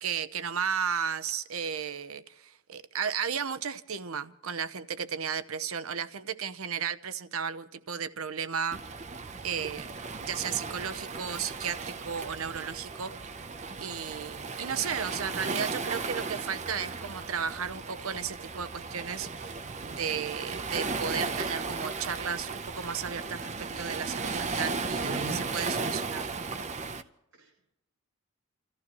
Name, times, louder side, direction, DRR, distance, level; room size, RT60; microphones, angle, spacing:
voice 1, 0.0-8.8 9.4-9.9 10.2-13.1 13.8-19.5 19.9-26.3, right 7 dB, 90° right, 0.8 m, -34 dB
Waves surf, 8.7-27.0, right 4 dB, 35° right, 0.7 m, -35 dB
voice 2, 25.0-25.5 27.3-27.6, right 2 dB, 65° right, 4.0 m, -39 dB
29.0 x 14.5 x 3.1 m
head